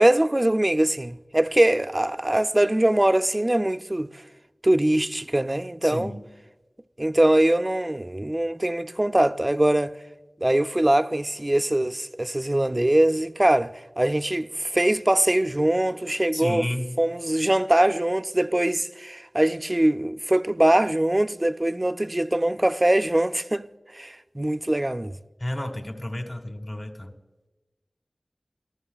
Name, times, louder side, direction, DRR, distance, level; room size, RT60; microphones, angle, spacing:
voice 1, 0.0-4.1 4.6-6.2 7.0-10.0 10.4-16.7 17.0-23.7 23.9-25.1, right 1 dB, 25° right, 0.4 m, -22 dB
voice 2, 5.8-6.3 16.3-16.9 25.4-27.1, left 1 dB, 45° left, 1.7 m, -31 dB
24.0 x 14.5 x 2.3 m
wide cardioid pair, 40°, 0 cm